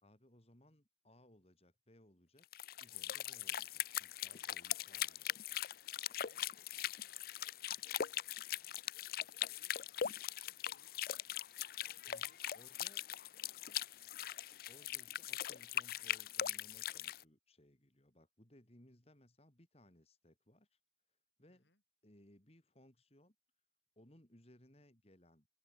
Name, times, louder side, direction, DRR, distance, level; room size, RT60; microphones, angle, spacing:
voice 1, 0.0-2.5 2.8-5.4 12.1-12.2 12.5-13.0 14.7-20.8 21.4-21.7 22.0-23.4 24.0-25.5, left 1 dB, 35° left, 3.4 m, -65 dB
sound 1, 2.4-17.2, left 11 dB, 55° left, 0.5 m, -41 dB
voice 2, 4.4-5.3 5.9-8.8 9.3-12.9 21.5-21.8, left 3 dB, 75° left, 7.5 m, -73 dB
head